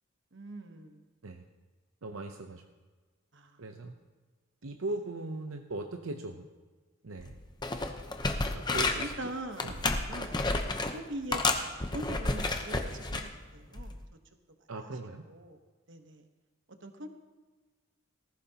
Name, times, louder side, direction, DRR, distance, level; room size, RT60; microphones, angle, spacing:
voice 1, 0.3-1.1 3.3-3.6 7.0-7.1 9.0-10.4 10.9-14.0 15.3-15.6 15.9-16.2 16.8-17.1, right 1 dB, 55° right, 6 dB, 1.1 m, -42 dB
voice 2, 2.0-2.6 3.6-3.9 4.6-6.5 7.0-7.4 8.5-9.3 9.6-9.7 14.7-15.2, right 2 dB, 75° right, 4 dB, 0.7 m, -39 dB
sound 1, 7.2-7.3 7.6-9.2 9.6-10.9 11.3-13.3 13.8-14.0, left 2 dB, 20° left, 0.8 m, -31 dB
19.0 x 15.0 x 2.9 m, 1.3 s
head